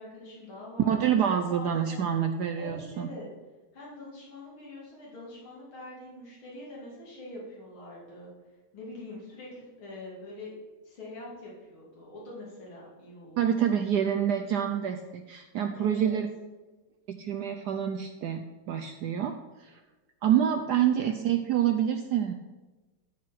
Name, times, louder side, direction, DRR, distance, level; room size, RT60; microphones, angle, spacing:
voice 1, 0.0-1.0 1.5-2.0 2.6-3.3 3.7-8.3 8.7-10.5 10.8-13.4 15.8-16.2, left 2 dB, 75° left, -6 dB, 3.4 m, -44 dB
voice 2, 0.9-3.1 13.4-16.3 17.1-19.3 19.6-19.8 20.2-22.3, right 9 dB, 70° right, 6 dB, 0.9 m, -27 dB
12.0 x 4.7 x 5.8 m, 1.2 s
omnidirectional pair, 2.3 m